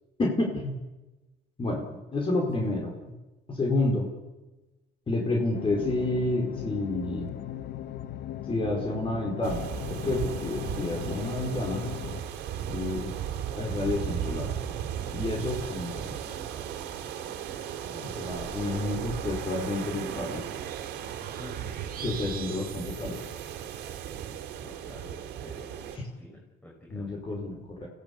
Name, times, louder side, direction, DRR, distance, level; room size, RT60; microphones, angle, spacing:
voice 1, 0.2-0.7 1.6-1.8 2.1-2.9 3.5-4.1 5.1-7.3 8.5-11.8 12.6-13.1 13.5-14.5 15.1-16.2 18.0-20.4 22.0-23.2 25.9-26.0 26.9-27.9, left 2 dB, 30° left, 0 dB, 4.7 m, -29 dB
sound 1, 5.5-12.2, left 11 dB, 75° left, 1.1 m, -38 dB
sound 2, 9.4-26.0, right 9 dB, 85° right, 2.9 m, -36 dB
voice 2, 17.8-18.4 21.4-21.6 24.6-27.2, left 1 dB, 10° left, -2 dB, 5.4 m, -48 dB
Fairy Wonderland, 18.2-24.0, right 8 dB, 60° right, 2.3 m, -44 dB
25.0 x 16.5 x 8.5 m, 1.1 s
cardioid pair, 110°, 17 cm